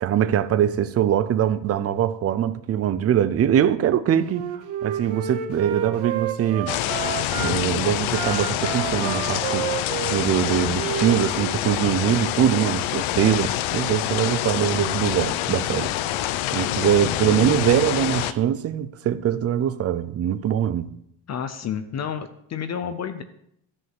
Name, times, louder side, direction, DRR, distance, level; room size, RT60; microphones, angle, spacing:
voice 1, 0.0-4.5 4.8-6.8 7.3-9.7 10.1-15.9 16.5-20.9, right 10 dB, 35° right, 0.5 m, -22 dB
Wind instrument woodwind instrument, 4.2-7.5 8.1-11.6, right 9 dB, 80° right, 1.5 m, -30 dB
sound 1, 6.7-18.3, left 13 dB, 90° left, 0.7 m, -26 dB
voice 2, 21.3-23.2, left 8 dB, 35° left, 0.6 m, -30 dB
13.0 x 5.3 x 7.7 m
cardioid pair, 175°, 46 cm